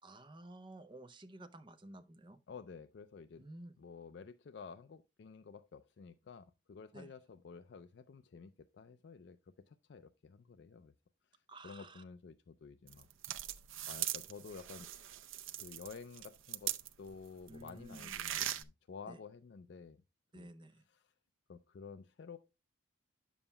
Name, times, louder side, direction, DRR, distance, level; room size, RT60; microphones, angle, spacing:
voice 1, 0.0-2.4 3.4-3.7 6.9-7.1 11.5-12.0 17.5-18.1 19.1-19.2 20.3-20.8, right 1 dB, 25° right, 0.6 m, -52 dB
voice 2, 2.5-3.5 3.8-9.4 9.7-10.9 11.3-13.1 13.8-15.2 15.6-20.0 20.3-20.5 20.9-21.1 21.5-22.4, left 5 dB, 60° left, 0.4 m, -52 dB
sound 1, 12.9-17.2 17.5-18.6, right 12 dB, 85° right, 0.5 m, -40 dB
9.6 x 7.1 x 2.2 m
head